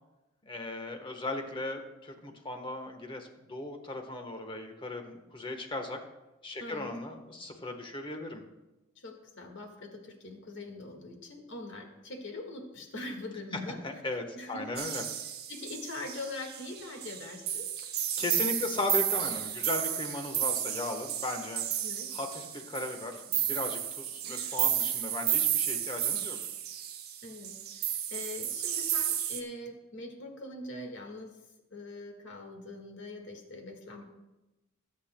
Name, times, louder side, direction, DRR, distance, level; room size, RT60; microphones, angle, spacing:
voice 1, 0.5-6.0 6.4-8.4 13.8-15.0 18.2-21.6 22.1-26.4, left 2 dB, 25° left, 5 dB, 1.2 m, -37 dB
voice 2, 6.6-7.0 9.0-13.8 14.1-14.9 15.2-17.7 21.8-22.1 24.2-24.4 27.2-31.3 31.7-34.0, left 2 dB, 60° left, 3 dB, 1.7 m, -43 dB
sound 1, 14.8-29.4, right 10 dB, 50° right, 1.0 m, -32 dB
19.0 x 8.4 x 2.2 m, 1.0 s
head